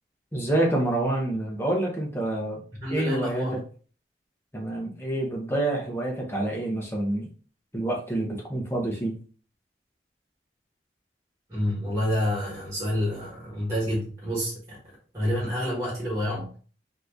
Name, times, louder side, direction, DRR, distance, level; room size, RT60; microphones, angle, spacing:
voice 1, 0.3-2.6 2.9-3.6 4.5-7.3 7.7-9.2, right 1 dB, 15° left, -1 dB, 0.8 m, -27 dB
voice 2, 2.8-3.6 11.5-14.8 15.1-16.5, equal, 15° right, -4 dB, 1.2 m, -28 dB
2.9 x 2.5 x 3.5 m, 0.41 s
head